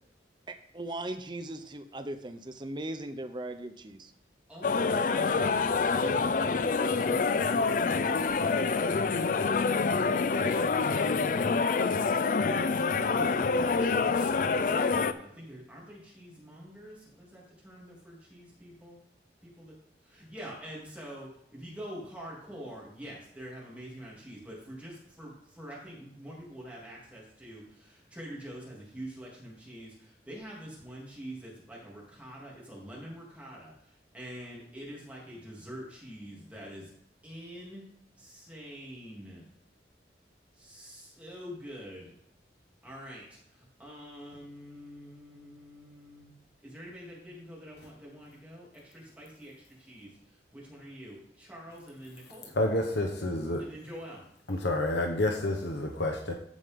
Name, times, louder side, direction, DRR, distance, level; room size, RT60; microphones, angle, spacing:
voice 1, 0.5-4.1, right 1 dB, 25° right, 7 dB, 0.7 m, -38 dB
voice 2, 4.5-9.6 10.2-12.1 12.4-19.0 19.4-19.7 20.0-36.9 37.2-37.8 38.2-39.4 40.5-42.1 42.8-46.3 46.6-52.5 53.6-54.2, equal, 10° right, -5 dB, 2.9 m, -45 dB
sound 1, 4.6-15.1, left 4 dB, 50° left, 0.4 m, -26 dB
voice 3, 52.6-53.6 54.5-56.3, left 1 dB, 75° left, 2 dB, 1.0 m, -29 dB
14.0 x 5.3 x 3.7 m, 0.74 s
head